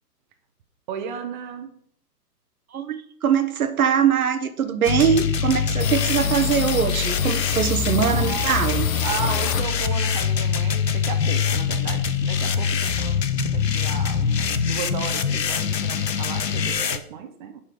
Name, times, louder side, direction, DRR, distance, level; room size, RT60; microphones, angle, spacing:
voice 1, 0.9-1.7 8.0-8.6 9.0-17.6, right 6 dB, 30° right, 6 dB, 0.9 m, -34 dB
voice 2, 2.7-8.9, right 8 dB, 60° right, 10 dB, 1.1 m, -22 dB
sound 1, 4.8-17.0, left 7 dB, 80° left, 1.0 m, -24 dB
sound 2, 5.8-10.1 10.5-11.9 12.1-12.2 12.5-13.2, left 8 dB, 55° left, 1.0 m, -32 dB
6.3 x 5.5 x 6.8 m, 0.65 s
figure-of-eight pair, 130°, 48 cm